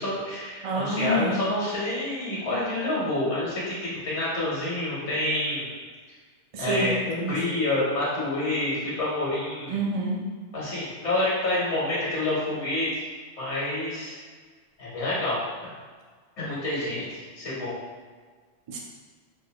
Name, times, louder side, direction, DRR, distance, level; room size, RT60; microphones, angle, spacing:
voice 1, 0.0-5.7 6.6-9.8 10.5-13.1 13.4-14.2 14.8-15.4 16.4-17.8, left 1 dB, 75° left, -8 dB, 1.5 m, -28 dB
voice 2, 0.6-1.4 6.5-7.3 9.7-10.2 18.7-18.8, right 1 dB, 60° right, -2 dB, 0.3 m, -27 dB
4.6 x 2.1 x 2.8 m, 1.5 s
omnidirectional pair, 1.2 m